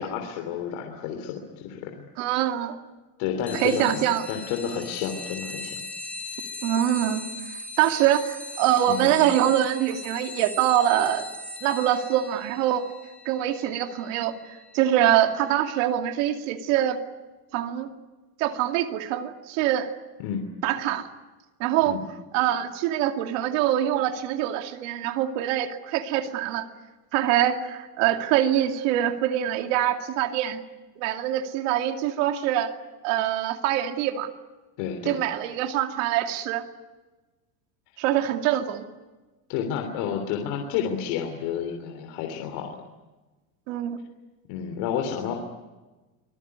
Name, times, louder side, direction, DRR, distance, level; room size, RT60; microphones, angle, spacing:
voice 1, 0.0-1.9 3.2-5.8 8.9-9.1 20.2-20.4 21.9-22.0 34.8-35.2 39.5-42.7 44.5-45.3, left 8 dB, 55° left, 4 dB, 3.4 m, -30 dB
voice 2, 2.2-2.8 3.5-4.2 6.6-7.2 7.8-11.3 11.6-12.8 13.2-17.0 17.5-17.9 18.4-19.9 20.6-21.1 21.6-22.0 22.3-26.7 27.1-30.6 31.0-32.7 33.0-34.3 35.1-36.7 38.0-38.8 43.7-44.0, right 11 dB, 60° right, 6 dB, 2.5 m, -24 dB
sound 1, 3.5-15.6, left 2 dB, 5° left, 1.2 m, -39 dB
25.0 x 21.0 x 9.6 m, 1.2 s
supercardioid pair, 165°, 43 cm